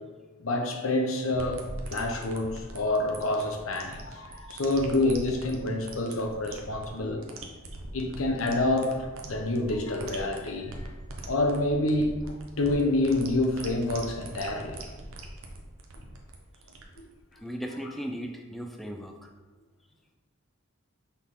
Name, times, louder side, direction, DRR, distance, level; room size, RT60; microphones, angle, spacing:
voice 1, 0.4-7.2 7.9-10.9 11.3-14.8 17.0-17.1, left 2 dB, 75° left, 3 dB, 0.9 m, -28 dB
sound 1, 1.3-17.5, right 2 dB, 80° right, 0.9 m, -42 dB
voice 2, 17.3-19.3, equal, ahead, 2 dB, 0.5 m, -37 dB
6.2 x 5.8 x 3.7 m, 1.3 s
head